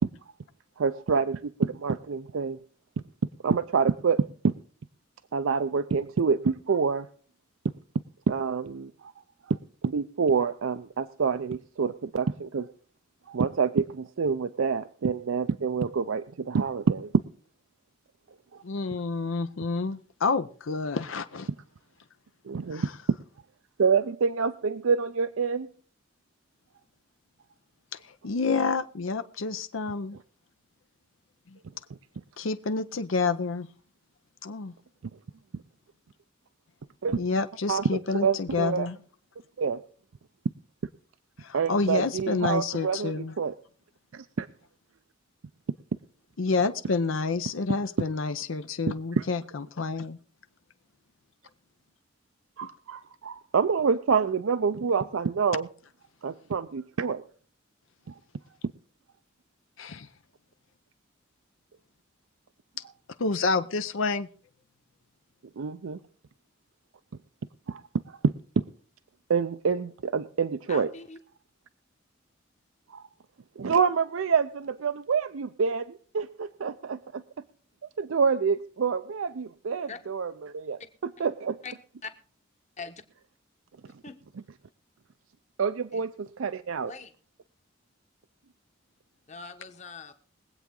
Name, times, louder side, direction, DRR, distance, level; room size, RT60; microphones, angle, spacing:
voice 1, 0.8-2.6 3.4-4.5 5.3-7.1 8.3-9.1 9.5-12.7 13.3-17.1 22.5-22.9 23.8-25.7 37.0-37.2 37.7-38.9 39.6-39.8 41.5-43.5 44.1-44.5 49.2-49.3 52.6-55.7 56.2-57.2 65.6-66.0 67.7-67.8 68.1-68.3 69.3-70.9 72.9-73.0 73.6-77.2 78.0-80.8 81.2-81.6 85.6-86.9, right 5 dB, 85° right, 11 dB, 0.5 m, -27 dB
voice 2, 18.6-21.5 22.7-22.8 27.9-30.2 31.5-31.6 32.4-33.7 34.4-34.7 37.2-39.0 41.4-43.3 46.4-50.2 59.8-60.1 63.2-64.3, left 4 dB, 80° left, 10 dB, 0.6 m, -29 dB
voice 3, 70.7-71.2 79.9-80.0 81.6-81.7 82.0-82.1 82.8-83.0 83.9-84.2 85.9-86.0 86.8-87.1 89.3-90.1, left 5 dB, 35° left, 8 dB, 1.2 m, -41 dB
22.0 x 8.3 x 3.8 m, 0.42 s
head